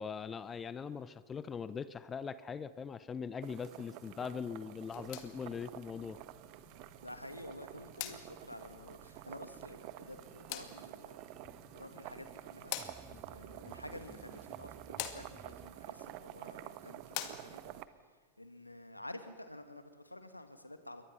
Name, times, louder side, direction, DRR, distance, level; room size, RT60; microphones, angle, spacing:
voice 1, 0.0-6.2, left 6 dB, 20° left, 16 dB, 0.8 m, -41 dB
sound 1, 3.4-17.8, right 15 dB, 45° right, 1.1 m, -50 dB
sound 2, 4.8-17.8, left 12 dB, 45° left, 2.1 m, -49 dB
voice 2, 7.0-11.3 11.7-21.1, left 1 dB, 85° left, 8 dB, 2.0 m, -51 dB
sound 3, 9.8-15.7, right 5 dB, 15° right, 1.3 m, -58 dB
28.5 x 23.0 x 6.0 m, 1.4 s
figure-of-eight pair, 90°, 0 cm